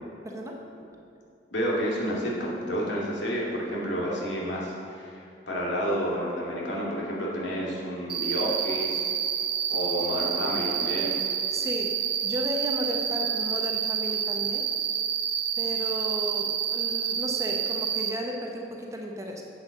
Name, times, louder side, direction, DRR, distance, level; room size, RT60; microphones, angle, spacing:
voice 1, 0.2-0.6 11.5-11.9 12.2-14.7 15.6-19.4, equal, 15° right, 1 dB, 1.0 m, -34 dB
voice 2, 1.5-9.1 9.7-11.2, equal, 70° left, -4 dB, 2.4 m, -30 dB
Cricket, 8.1-18.1, right 8 dB, 60° right, 1.0 m, -28 dB
8.1 x 7.7 x 6.5 m, 2.6 s
head